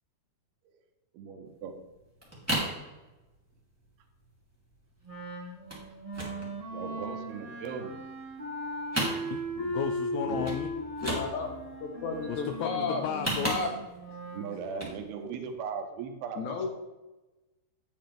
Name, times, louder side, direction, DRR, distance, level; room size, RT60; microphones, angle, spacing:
voice 1, 1.1-1.7 6.7-8.0 10.2-10.5 14.3-16.7, right 6 dB, 85° right, 5 dB, 2.9 m, -38 dB
sound 1, 1.6-1.7 1.9-2.8 3.2-3.5 3.8-3.9 4.1-4.4 4.7-5.2 5.7-5.9 6.1-7.4 7.8-8.6 8.8-9.7 10.0-10.1 10.4-10.6 10.9-11.6 12.9-14.0 14.6-15.0 15.4-15.5, right 1 dB, 5° right, 2.4 m, -33 dB
Wind instrument woodwind instrument, 5.0-14.5, equal, 45° right, 0.4 m, -38 dB
voice 2, 9.3-10.7 12.3-13.8, left 9 dB, 90° left, 7 dB, 1.9 m, -34 dB
voice 3, 11.0-11.5 11.8-13.0 13.4-13.7 16.4-16.7, left 4 dB, 70° left, 3 dB, 1.9 m, -32 dB
9.3 x 7.7 x 3.5 m, 1.1 s
omnidirectional pair, 4.5 m